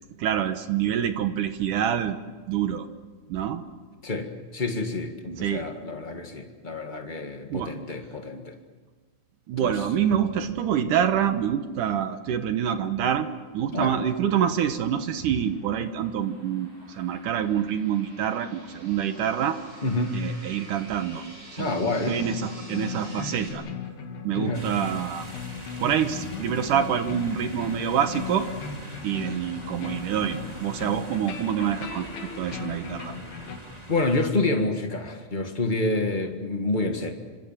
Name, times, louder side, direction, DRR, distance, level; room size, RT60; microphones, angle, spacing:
voice 1, 0.2-2.2 2.5-2.9 3.3-3.6 5.4-5.7 7.5-7.7 9.5-13.3 13.5-19.6 20.1-21.2 21.5-23.6 24.2-25.3 25.8-28.5 29.0-33.2, right 9 dB, 70° right, 9 dB, 2.4 m, -26 dB
voice 2, 4.0-8.6 9.5-9.9 13.7-14.0 19.8-20.2 21.6-22.2 24.4-24.7 33.9-37.1, left 2 dB, 70° left, 4 dB, 0.4 m, -28 dB
sound 1, 13.1-23.5, right 1 dB, 45° right, 8.6 m, -49 dB
sound 2, 21.8-33.6, left 6 dB, 85° left, 4.3 m, -37 dB
sound 3, 24.5-34.3, right 1 dB, 10° right, 3.2 m, -44 dB
27.5 x 26.0 x 7.4 m, 1.4 s
omnidirectional pair, 4.2 m